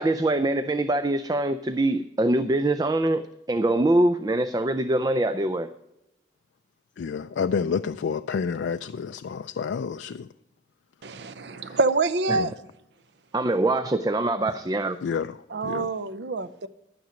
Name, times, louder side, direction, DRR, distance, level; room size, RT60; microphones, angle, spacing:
voice 1, 0.0-5.7 12.3-12.4 13.3-15.0, right 2 dB, 20° right, 0.3 m, -24 dB
voice 2, 7.0-10.3 11.5-11.8 12.4-12.5 15.0-15.4 15.6-15.9, left 6 dB, 80° left, 0.3 m, -29 dB
voice 3, 11.0-12.5 15.5-16.7, right 3 dB, 70° right, 0.6 m, -26 dB
11.5 x 9.3 x 5.1 m
head